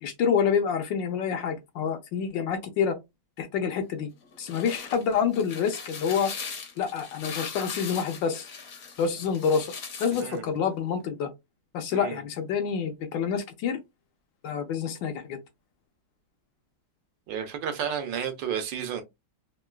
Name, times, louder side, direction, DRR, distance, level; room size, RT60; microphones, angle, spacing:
voice 1, 0.0-3.0 3.4-4.1 4.4-6.3 6.8-8.5 9.0-9.7 10.0-11.3 11.7-13.8 14.4-15.4, left 7 dB, 75° left, 1.2 m, -27 dB
sound 1, 4.2-10.4, left 5 dB, 55° left, 1.0 m, -40 dB
voice 2, 17.3-19.0, right 8 dB, 75° right, 1.3 m, -31 dB
3.7 x 2.3 x 2.2 m
omnidirectional pair, 2.2 m